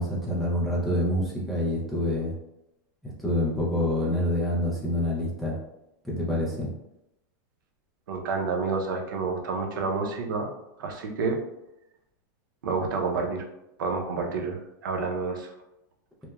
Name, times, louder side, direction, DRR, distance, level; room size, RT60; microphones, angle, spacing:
voice 1, 0.0-2.3 3.0-5.6 6.0-6.7, left 1 dB, ahead, -6 dB, 0.3 m, -27 dB
voice 2, 8.1-10.5 10.8-11.4 12.6-13.4 13.8-15.5, right 4 dB, 90° right, 3 dB, 0.5 m, -29 dB
2.9 x 2.1 x 2.2 m, 0.88 s
supercardioid pair, 175°, 10 cm